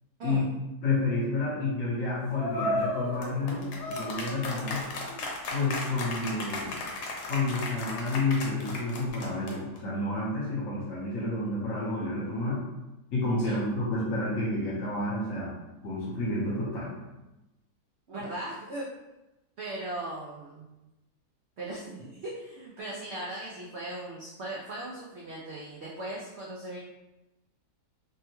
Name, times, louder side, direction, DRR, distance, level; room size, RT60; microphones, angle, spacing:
voice 1, 0.8-4.8 5.5-6.8 7.3-12.6 13.1-15.6 15.8-16.9, left 2 dB, 55° left, -6 dB, 1.3 m, -30 dB
sound 1, 2.3-9.8, left 2 dB, 80° left, 1.2 m, -34 dB
voice 2, 18.1-18.9 19.6-20.7 21.6-26.8, right 1 dB, 85° right, -4 dB, 0.5 m, -38 dB
3.3 x 2.2 x 2.9 m, 0.99 s
omnidirectional pair, 1.7 m